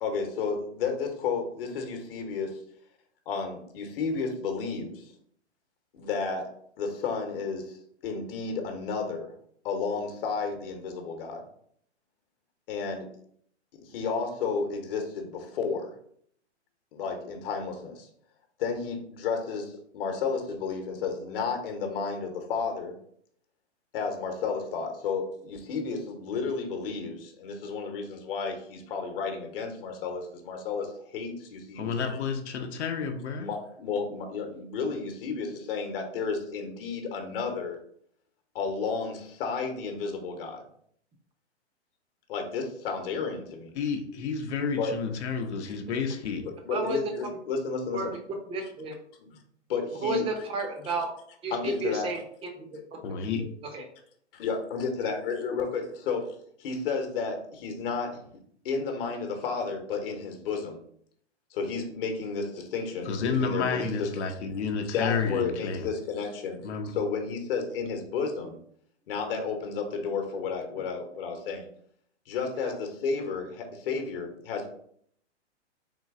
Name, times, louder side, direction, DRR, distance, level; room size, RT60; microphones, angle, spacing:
voice 1, 0.0-2.6 3.3-5.1 5.9-6.5 6.8-9.3 9.6-11.4 12.7-13.1 13.8-15.9 16.9-18.1 18.6-23.0 23.9-32.2 33.4-37.8 38.5-40.6 42.3-43.7 44.8-44.9 46.4-48.1 49.2-49.4 49.7-50.2 51.5-52.1 54.3-56.3 56.6-58.2 58.6-60.8 61.5-64.2 64.8-68.6 69.1-71.7 72.3-74.7, left 5 dB, 50° left, 5 dB, 1.1 m, -32 dB
voice 2, 31.8-33.5 43.8-46.5 53.0-53.4 63.1-65.9 66.6-67.0, left 5 dB, 70° left, 5 dB, 0.8 m, -30 dB
voice 3, 46.7-47.0 47.9-48.1 48.5-48.9 50.0-51.1 51.4-52.8 53.4-53.8 72.5-72.7, right 2 dB, 15° right, 3 dB, 0.7 m, -32 dB
3.8 x 3.1 x 3.6 m, 0.65 s
hypercardioid pair, 130°, 35 cm